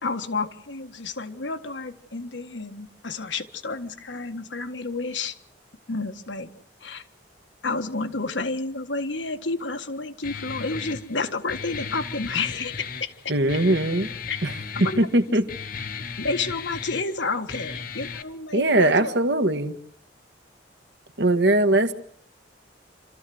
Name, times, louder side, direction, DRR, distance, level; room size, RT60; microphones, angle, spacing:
voice 1, 0.0-5.3 5.9-6.5 6.8-7.0 7.6-13.1 14.3-14.4 14.8-15.1 16.2-19.1, left 3 dB, 75° left, 1.6 m, -30 dB
Guitar, 10.2-18.2, left 5 dB, 50° left, 1.2 m, -36 dB
voice 2, 13.3-14.1 14.4-14.5 15.0-15.5 18.5-19.8 21.2-21.9, right 1 dB, 65° right, 1.6 m, -20 dB
27.5 x 14.0 x 7.8 m
head